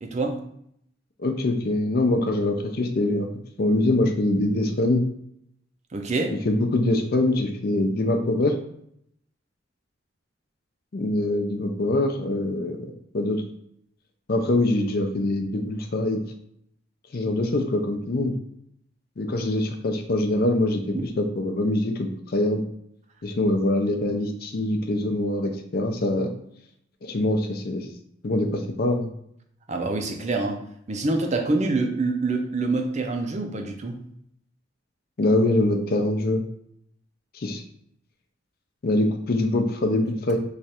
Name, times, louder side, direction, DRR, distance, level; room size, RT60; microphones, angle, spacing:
voice 1, 0.0-0.4 5.9-6.3 20.9-21.0 29.7-30.6 30.9-34.0, right 3 dB, 35° right, 4 dB, 0.5 m, -26 dB
voice 2, 1.2-3.3 3.6-5.0 6.5-8.6 10.9-12.8 13.1-13.4 14.3-16.2 17.1-18.4 19.2-22.6 23.2-26.3 27.0-27.9 28.2-29.1 35.2-36.4 37.3-37.6 38.8-40.4, left 1 dB, 50° left, 5 dB, 0.5 m, -24 dB
3.2 x 2.4 x 4.2 m, 0.71 s
head